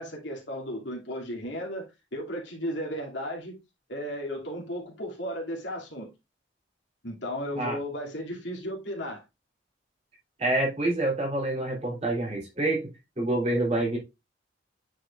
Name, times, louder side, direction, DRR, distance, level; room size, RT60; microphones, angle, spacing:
voice 1, 0.0-1.9 2.1-3.6 3.9-6.1 7.0-9.2, equal, 70° left, 2.5 m, -34 dB
voice 2, 10.4-12.9 13.2-14.0, right 2 dB, 35° right, 3.0 m, -27 dB
9.1 x 4.9 x 2.4 m
head